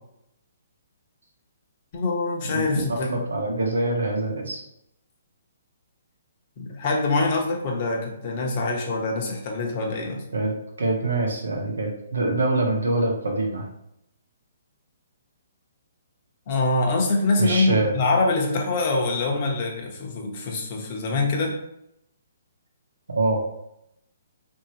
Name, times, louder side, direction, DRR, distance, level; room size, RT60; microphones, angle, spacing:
voice 1, 1.9-3.2 6.6-10.2 16.5-21.5, left 3 dB, 45° left, 0 dB, 0.8 m, -24 dB
voice 2, 3.1-4.6 10.3-10.5 10.8-13.7 17.4-17.9 23.1-23.4, right 2 dB, 80° right, 0 dB, 0.9 m, -24 dB
3.0 x 2.7 x 2.8 m, 0.79 s
hypercardioid pair, 140°, 0 cm